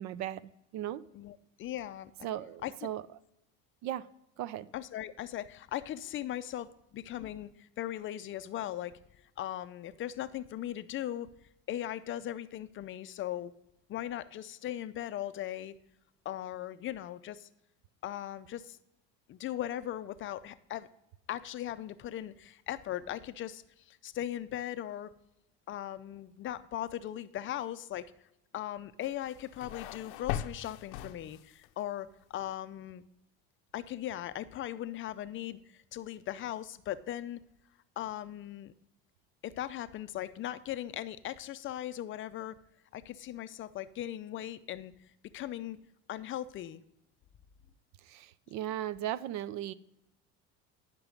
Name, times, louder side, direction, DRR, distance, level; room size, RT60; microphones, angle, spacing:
voice 1, 0.0-1.0 2.2-3.0 3.8-4.1 4.4-4.7 48.0-49.7, right 12 dB, 55° right, 19 dB, 0.5 m, -37 dB
voice 2, 1.1-2.1 2.6-2.9 4.7-9.0 9.4-11.3 11.7-13.5 13.9-15.7 16.2-17.5 18.0-18.8 19.3-20.9 21.3-25.1 25.7-28.1 28.5-33.0 33.7-37.4 38.0-38.7 39.4-42.6 42.9-44.9 45.3-45.8 46.1-46.8, left 12 dB, 40° left, 13 dB, 0.5 m, -39 dB
sound 1, 29.0-31.7, left 11 dB, 80° left, 0.6 m, -40 dB
10.5 x 6.0 x 5.0 m, 0.87 s
supercardioid pair, 105°, 33 cm